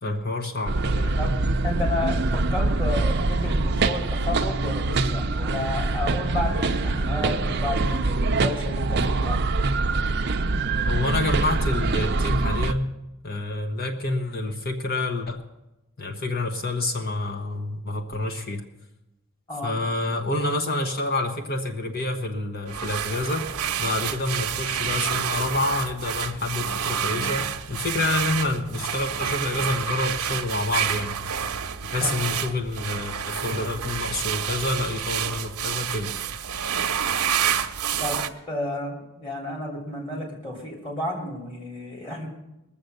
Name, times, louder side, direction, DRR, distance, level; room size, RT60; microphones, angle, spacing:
voice 1, 0.0-1.2 10.8-12.9 13.2-15.4 16.0-18.6 19.6-23.5 23.8-31.2 31.8-36.1, left 2 dB, 45° left, 3 dB, 1.1 m, -28 dB
sound 1, 0.7-12.7, right 3 dB, 50° right, 0.6 m, -24 dB
voice 2, 1.2-9.4 19.5-19.7 32.0-32.6 37.9-42.3, left 2 dB, 20° left, -1 dB, 2.9 m, -32 dB
sound 2, 22.7-38.3, right 8 dB, 90° right, 0.8 m, -29 dB
20.5 x 7.2 x 6.7 m, 0.96 s
head